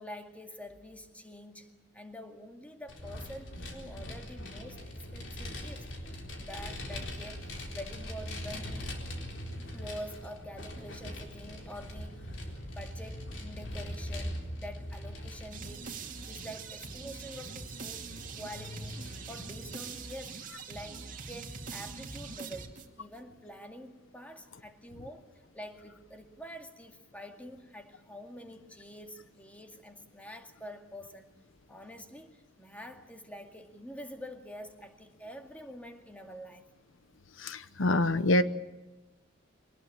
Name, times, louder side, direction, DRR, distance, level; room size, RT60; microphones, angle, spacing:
voice 1, 0.0-4.8 5.1-8.9 9.7-16.0 16.3-18.1 18.4-31.3 31.7-36.7, equal, 5° left, 5 dB, 2.1 m, -47 dB
Vehicle, 2.9-19.8, left 1 dB, 65° left, 4.1 m, -42 dB
sound 1, 15.5-23.2, right 5 dB, 40° right, 2.3 m, -43 dB
voice 2, 37.4-38.4, left 2 dB, 80° left, 13 dB, 0.9 m, -26 dB
24.0 x 19.5 x 8.8 m, 1.1 s
head